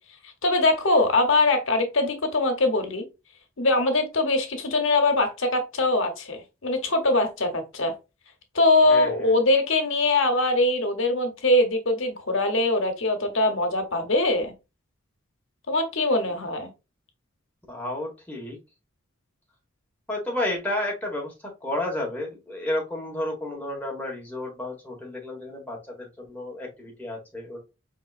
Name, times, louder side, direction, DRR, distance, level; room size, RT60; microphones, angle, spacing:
voice 1, 0.4-3.0 3.6-7.9 8.5-14.5 15.7-16.7, left 2 dB, 65° left, 6 dB, 1.0 m, -22 dB
voice 2, 8.9-9.3 17.7-18.6 20.1-27.6, left 1 dB, 5° left, -2 dB, 1.5 m, -31 dB
4.9 x 3.4 x 2.5 m, 0.26 s
head